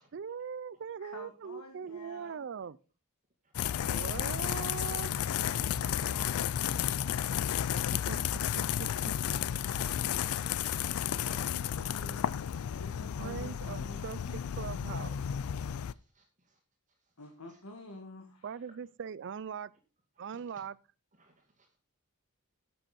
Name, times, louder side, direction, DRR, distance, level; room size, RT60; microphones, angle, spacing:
voice 1, 0.1-2.8 3.8-5.1 7.9-8.2 8.5-9.1 13.2-15.2 18.4-19.7 20.2-20.8, right 7 dB, 55° right, 0.4 m, -41 dB
voice 2, 1.0-2.5 5.1-7.1 11.0-12.4 12.7-14.9 17.2-18.6, left 1 dB, 90° left, 1.7 m, -50 dB
sound 1, 3.5-15.9, left 9 dB, 75° left, 0.4 m, -32 dB
voice 3, 9.6-11.0 15.9-16.2 20.2-20.3 21.2-21.3, right 2 dB, 35° right, 2.2 m, -61 dB
9.9 x 7.8 x 4.2 m
head